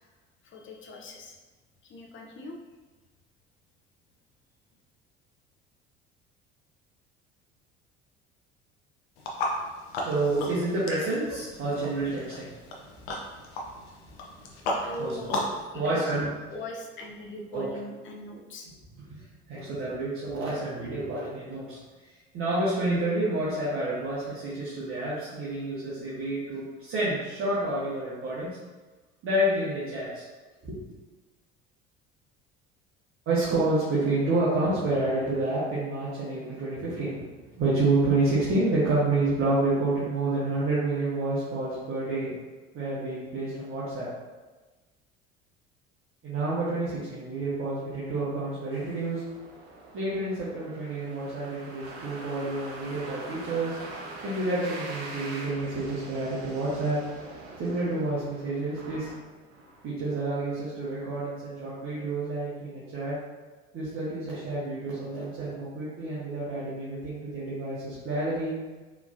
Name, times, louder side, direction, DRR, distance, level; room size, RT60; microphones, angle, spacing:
voice 1, 0.4-1.4 1.8-2.5 14.8-15.3 15.7-16.1 16.5-18.7, left 1 dB, 35° left, 1 dB, 0.8 m, -40 dB
sound 1, 9.2-15.6, left 1 dB, 65° left, 0.8 m, -35 dB
voice 2, 10.0-12.6 13.5-13.6 14.7-15.4 15.7-16.3 17.5-17.7 19.1-19.2 19.5-21.8 22.1-28.6 29.2-30.2 30.6-30.8 33.3-42.3 42.7-44.1 46.2-49.2 49.9-53.8 54.2-57.0 57.6-59.1 59.8-63.2 63.7-68.6, right 2 dB, 40° right, -9 dB, 1.3 m, -29 dB
sound 2, 48.7-59.9, right 2 dB, 55° right, 1.0 m, -43 dB
4.8 x 3.3 x 2.7 m, 1.3 s
figure-of-eight pair, 60°, 33 cm